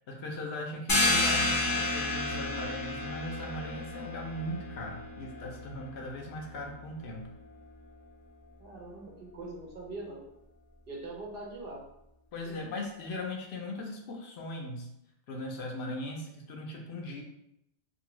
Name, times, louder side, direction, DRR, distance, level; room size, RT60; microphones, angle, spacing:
voice 1, 0.1-7.3 12.3-14.9 15.3-17.2, left 1 dB, 70° left, 1 dB, 0.8 m, -39 dB
sound 1, 0.9-6.3, left 2 dB, 25° left, 0.5 m, -31 dB
voice 2, 8.6-10.2 10.9-11.8 12.4-12.6, right 2 dB, 55° right, -2 dB, 0.8 m, -42 dB
2.7 x 2.6 x 2.9 m, 0.81 s
omnidirectional pair, 1.2 m